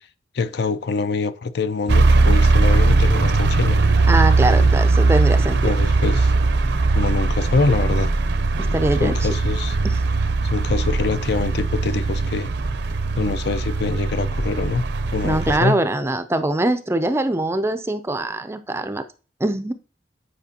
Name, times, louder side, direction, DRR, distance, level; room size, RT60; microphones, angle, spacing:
voice 1, 0.3-3.8 5.6-6.3 6.9-8.1 9.0-9.8 10.4-12.5 13.2-14.8 15.1-15.8, left 4 dB, 60° left, 0.4 m, -24 dB
sound 1, 1.9-15.6, right 3 dB, 60° right, 0.6 m, -19 dB
voice 2, 4.1-5.7 8.6-9.2 9.8-9.9 15.2-19.0 19.4-19.7, right 1 dB, 15° right, 0.4 m, -22 dB
9.3 x 5.1 x 2.8 m
head